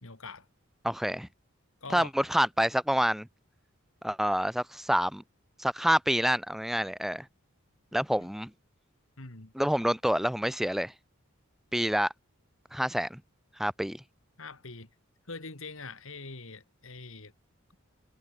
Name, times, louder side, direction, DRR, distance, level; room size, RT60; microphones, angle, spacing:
voice 1, 0.0-0.5 1.8-2.1 8.2-8.3 9.2-9.5 14.4-14.9 15.3-17.3, left 3 dB, 65° left, 2.6 m, -43 dB
voice 2, 0.8-1.3 1.9-3.3 4.0-5.2 5.6-7.3 7.9-8.5 9.5-10.9 11.7-12.1 12.7-13.2 13.6-14.0, equal, ahead, 0.9 m, -27 dB
head